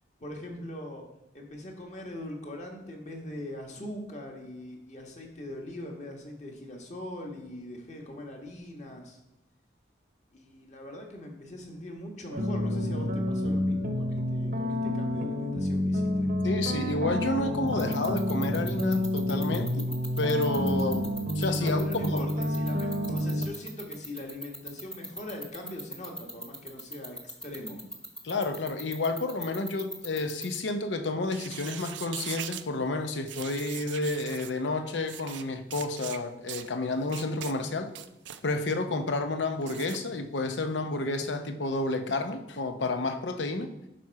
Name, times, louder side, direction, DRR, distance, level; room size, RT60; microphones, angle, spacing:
voice 1, 0.2-1.0 1.3-9.2 10.3-16.3 21.6-27.8, left 1 dB, 40° left, 1 dB, 1.4 m, -41 dB
sound 1, 12.3-23.5, left 1 dB, 50° right, 0.8 m, -29 dB
voice 2, 16.4-19.9 20.2-21.1 21.4-22.3 28.2-37.9 38.4-43.7, left 2 dB, 85° left, 8 dB, 0.8 m, -30 dB
sound 2, 17.7-30.6, equal, 5° left, 0.8 m, -38 dB
sound 3, 31.2-32.7 33.3-34.5 35.1-35.4 35.7-36.2 36.5-36.7 37.1-37.5 37.9-38.4 39.6-40.0, right 11 dB, 85° right, 0.5 m, -40 dB
11.5 x 4.3 x 4.7 m, 0.90 s
head